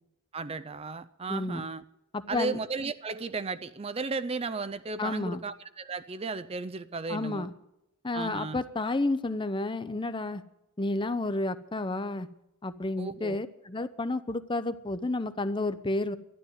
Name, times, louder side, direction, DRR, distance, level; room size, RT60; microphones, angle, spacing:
voice 1, 0.3-1.8 2.3-7.5 8.1-8.6 13.0-13.4, right 4 dB, 25° right, 0.4 m, -35 dB
voice 2, 1.3-1.6 2.1-2.6 5.0-5.4 7.1-7.5 8.0-10.4 10.8-12.3 12.6-16.2, left 2 dB, 20° left, 0.7 m, -31 dB
12.5 x 11.0 x 9.4 m
head